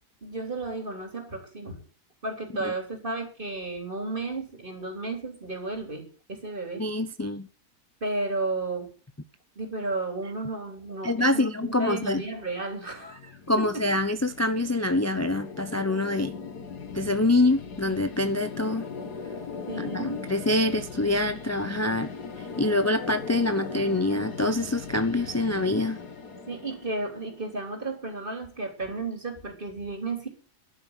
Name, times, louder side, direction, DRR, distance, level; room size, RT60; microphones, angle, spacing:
voice 1, 0.2-1.8 2.2-6.9 8.0-8.9 9.6-13.9 19.7-20.3 26.5-30.3, right 2 dB, 30° right, 3.8 m, -33 dB
voice 2, 6.8-7.5 11.0-12.2 13.5-16.3 16.9-18.9 19.9-22.1 22.6-26.0, left 2 dB, 20° left, 0.4 m, -25 dB
sound 1, 12.9-27.9, left 5 dB, 75° left, 2.1 m, -39 dB
11.5 x 9.5 x 8.2 m
omnidirectional pair, 1.7 m